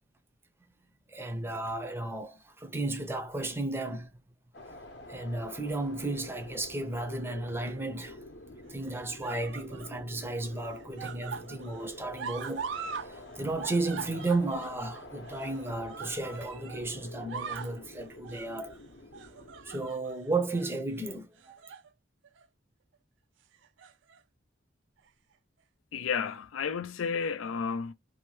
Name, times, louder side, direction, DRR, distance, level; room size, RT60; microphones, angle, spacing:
voice 1, 1.1-4.1 5.1-8.2 8.7-12.7 13.0-18.8 19.6-21.6, right 2 dB, 10° right, 0.5 m, -34 dB
sound 1, 4.5-19.9, left 1 dB, 60° left, 0.7 m, -48 dB
sound 2, 7.2-7.8 8.7-10.0 10.3-13.1 13.4-16.8 17.1-17.8 18.2-18.5 19.1-20.2 20.5-20.7 21.4-21.9 22.2-22.4 23.5-24.2 25.1-25.2, right 6 dB, 70° right, 0.4 m, -42 dB
voice 2, 25.9-27.9, left 6 dB, 85° left, 0.4 m, -32 dB
2.7 x 2.1 x 3.0 m
head